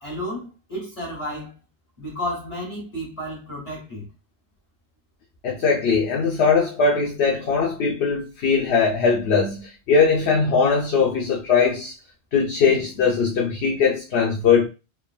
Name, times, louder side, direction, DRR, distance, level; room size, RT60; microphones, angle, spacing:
voice 1, 0.0-1.6 2.0-4.1, equal, 30° left, 1.5 m, -32 dB
voice 2, 5.4-11.9 12.3-14.7, left 5 dB, 75° left, 0.9 m, -20 dB
3.3 x 2.2 x 2.3 m
omnidirectional pair, 1.1 m